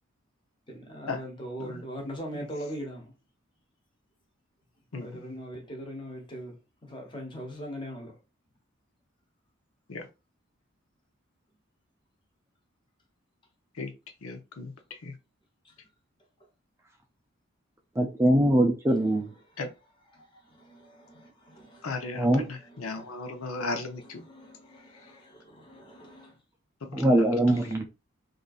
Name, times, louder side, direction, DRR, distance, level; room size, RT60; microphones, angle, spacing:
voice 1, 0.7-3.1 5.0-6.6 6.8-8.2 15.6-15.7 20.1-21.9 22.6-23.0 24.2-26.4, equal, 25° left, 1.0 m, -41 dB
voice 2, 4.9-5.3 9.9-10.1 13.7-13.9 14.2-15.2 19.6-19.7 21.8-24.2 25.0-25.1 26.8-27.7, left 3 dB, 85° left, 0.7 m, -36 dB
voice 3, 18.0-19.3 22.2-22.5 26.9-27.9, right 1 dB, 15° right, 0.4 m, -22 dB
3.8 x 2.6 x 2.4 m
head